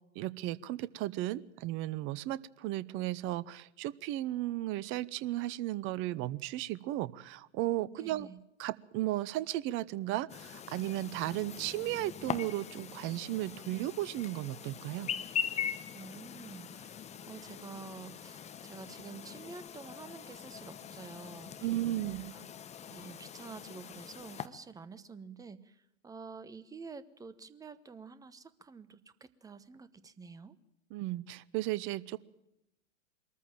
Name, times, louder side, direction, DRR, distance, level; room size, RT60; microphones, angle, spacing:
voice 1, 0.1-8.3 8.6-15.1 21.6-22.3 30.9-32.2, right 15 dB, 30° right, 20 dB, 0.8 m, -35 dB
voice 2, 7.9-8.4 15.9-22.4 22.9-30.5, right 4 dB, 10° right, 16 dB, 1.0 m, -49 dB
Chirp tweet, 10.3-24.5, left 8 dB, 15° left, 1.0 m, -42 dB
23.0 x 14.0 x 9.0 m, 0.86 s
figure-of-eight pair, 100°, 38 cm